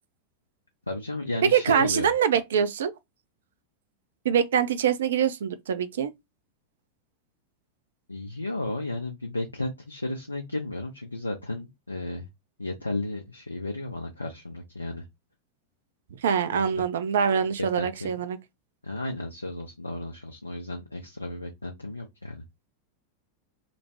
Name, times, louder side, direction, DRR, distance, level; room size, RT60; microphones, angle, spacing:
voice 1, 0.9-2.1 8.1-12.3 12.6-15.0 16.5-16.8 17.6-18.1 18.8-22.4, left 2 dB, 80° left, 0.4 m, -33 dB
voice 2, 1.4-2.9 4.2-6.1 16.2-18.4, right 7 dB, 60° right, 0.4 m, -24 dB
2.9 x 2.0 x 2.8 m
figure-of-eight pair, 90°, 0 cm